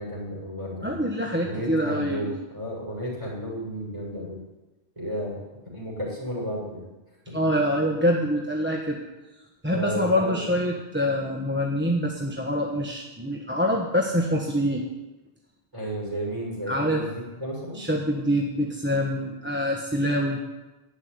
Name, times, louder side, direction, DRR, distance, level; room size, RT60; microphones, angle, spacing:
voice 1, 0.0-1.0 1.4-4.4 5.0-5.4 5.7-6.9 7.3-7.4 9.7-10.4 15.7-17.8, equal, 25° right, -4 dB, 6.9 m, -33 dB
voice 2, 0.8-2.3 7.3-9.0 9.6-14.8 16.7-17.0 17.7-20.4, equal, 10° right, -1 dB, 1.2 m, -25 dB
12.0 x 8.5 x 9.6 m, 1.1 s
omnidirectional pair, 1.2 m